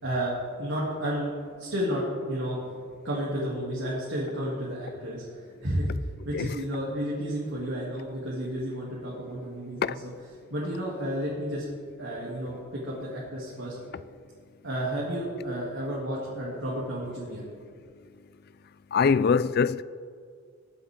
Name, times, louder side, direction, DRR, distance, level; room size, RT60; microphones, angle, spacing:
voice 1, 0.0-1.3 1.6-2.6 3.0-5.2 5.6-5.9 6.2-10.1 10.5-11.6 12.0-13.8 14.6-17.4, equal, 80° right, 2.9 m, -31 dB
voice 2, 18.9-19.8, left 5 dB, 55° left, 0.4 m, -23 dB
22.0 x 8.1 x 3.8 m
head